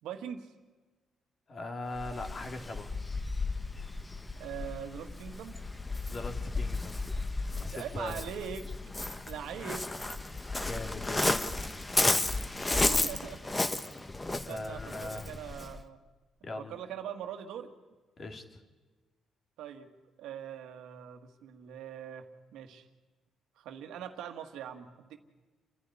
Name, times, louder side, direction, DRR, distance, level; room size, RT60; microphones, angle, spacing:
voice 1, 0.0-0.5 4.4-5.6 7.7-8.7 9.3-9.9 12.7-13.4 13.7-13.8 14.5-16.0 16.5-17.7 19.6-19.9 20.2-22.2 22.5-22.9 23.6-25.2, right 9 dB, 85° right, 7 dB, 1.7 m, -42 dB
voice 2, 1.5-2.9 6.1-7.0 7.6-8.1 10.7-11.3 14.4-15.4 16.4-16.7 18.2-18.6, left 2 dB, 40° left, 5 dB, 2.6 m, -40 dB
Waves surf, 1.9-15.8, left 2 dB, 15° left, 1.2 m, -33 dB
29.5 x 11.0 x 9.7 m, 1.3 s
cardioid pair, 90°, 0 cm